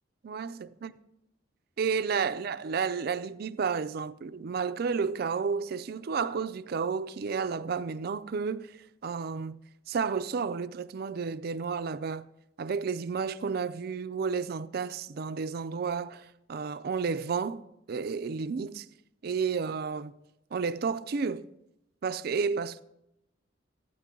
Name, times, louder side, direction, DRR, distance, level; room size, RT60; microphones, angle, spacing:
voice 1, 0.2-0.9 1.8-8.7 9.0-9.6 9.9-12.3 12.6-17.6 17.9-18.9 19.2-20.2 20.5-21.5 22.0-22.8, right 5 dB, 55° right, 0.4 m, -31 dB
13.5 x 9.1 x 3.7 m
head